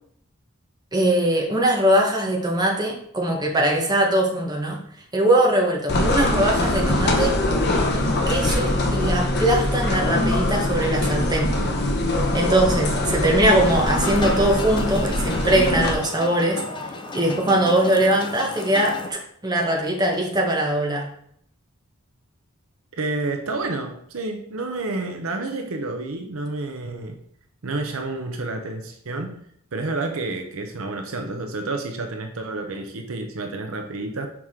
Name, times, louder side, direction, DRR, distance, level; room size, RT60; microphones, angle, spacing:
voice 1, 0.9-4.8 5.1-7.4 8.3-11.6 12.3-16.6 17.1-21.1, right 1 dB, 20° right, -1 dB, 1.1 m, -21 dB
sound 1, 5.9-15.9, left 1 dB, 50° left, 1.0 m, -22 dB
sound 2, 13.6-19.1, left 3 dB, 20° left, 0.6 m, -33 dB
voice 2, 23.0-27.2 27.6-29.4 29.7-34.3, right 2 dB, 70° right, 5 dB, 0.7 m, -29 dB
6.0 x 4.7 x 3.7 m, 0.67 s
head